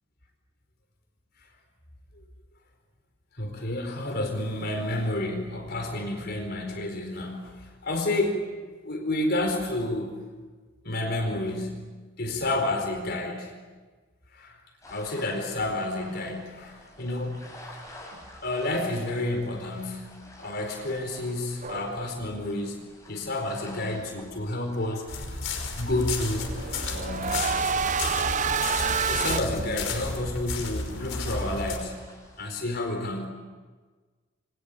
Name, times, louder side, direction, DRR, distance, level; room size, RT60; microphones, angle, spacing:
voice 1, 3.3-8.5 8.8-10.2 10.8-11.9 12.2-13.5 14.3-14.6 14.9-17.8 18.4-22.8 23.1-25.4 25.7-26.6 26.8-27.5 29.0-32.0 32.4-33.3, left 1 dB, 55° left, 4 dB, 4.5 m, -30 dB
sound 1, 14.8-32.5, left 1 dB, 15° left, 7.4 m, -50 dB
sound 2, 21.6-22.5 26.3-29.4, right 6 dB, 40° right, 0.8 m, -28 dB
sound 3, 25.1-31.8, left 3 dB, 70° left, 5.5 m, -33 dB
28.0 x 24.0 x 8.5 m, 1.4 s
head